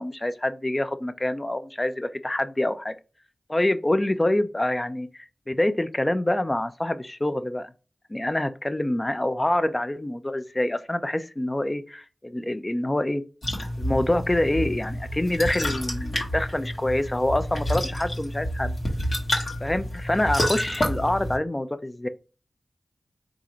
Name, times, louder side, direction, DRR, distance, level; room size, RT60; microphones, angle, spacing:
voice 1, 0.0-2.9 3.5-7.7 8.1-13.2 13.8-18.8 19.6-22.1, left 1 dB, 25° left, 0.4 m, -26 dB
sound 1, 13.4-21.4, equal, 65° left, 1.2 m, -29 dB
3.7 x 2.5 x 2.9 m
wide cardioid pair, 55°, 0 cm